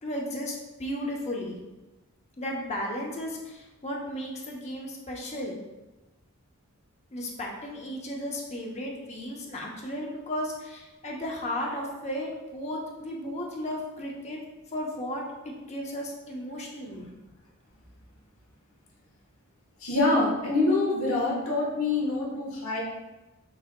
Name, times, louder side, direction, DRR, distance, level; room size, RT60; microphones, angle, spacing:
voice 1, 0.0-1.6 2.4-5.6 7.1-14.4 14.7-15.2 15.7-17.1, left 1 dB, 30° left, -2 dB, 0.7 m, -34 dB
voice 2, 19.8-22.8, left 2 dB, 70° left, -4 dB, 1.3 m, -25 dB
6.1 x 3.8 x 2.2 m, 1.1 s
head